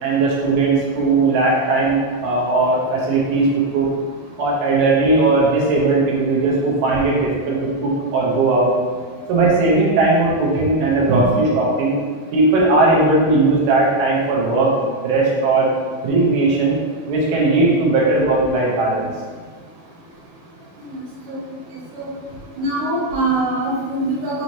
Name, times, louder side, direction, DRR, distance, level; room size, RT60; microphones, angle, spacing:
voice 1, 0.0-3.9 4.4-8.7 9.3-12.0 12.3-14.8 15.0-15.7 16.0-16.8 17.1-19.1, right 2 dB, 85° right, -4 dB, 2.7 m, -17 dB
voice 2, 22.6-24.4, right 2 dB, 65° right, -7 dB, 2.2 m, -22 dB
6.2 x 3.0 x 2.6 m, 1.5 s
omnidirectional pair, 4.4 m